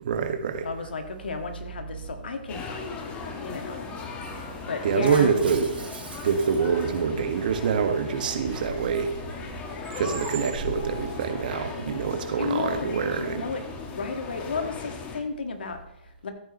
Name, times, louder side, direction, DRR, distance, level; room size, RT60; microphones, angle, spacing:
voice 1, 0.0-0.7 4.8-5.7 6.2-9.1 10.0-13.4, right 6 dB, 55° right, 6 dB, 1.6 m, -25 dB
voice 2, 0.6-3.9 4.7-5.4 12.4-13.6 13.9-16.3, left 4 dB, 70° left, 6 dB, 1.7 m, -33 dB
sound 1, 0.6-14.3, right 3 dB, 30° right, 2.8 m, -43 dB
sound 2, 2.5-15.2, left 4 dB, 20° left, 1.5 m, -38 dB
Shatter, 5.0-7.4, right 5 dB, 75° right, 2.0 m, -44 dB
14.0 x 8.9 x 3.1 m, 0.89 s
figure-of-eight pair, 130°, 6 cm